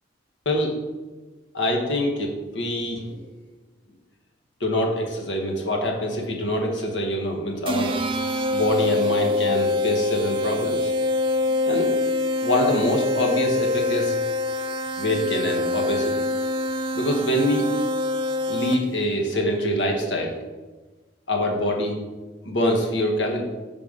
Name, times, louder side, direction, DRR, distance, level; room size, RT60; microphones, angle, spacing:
voice 1, 1.5-3.2 4.6-7.9 8.5-10.9 11.7-11.9 12.4-14.2 15.0-16.2 16.9-17.7 18.5-20.4 21.3-22.0 22.4-23.4, left 1 dB, 80° left, 1 dB, 1.1 m, -24 dB
sound 1, 7.7-19.0, left 2 dB, 30° right, 0.4 m, -25 dB
5.3 x 3.9 x 4.9 m, 1.2 s
head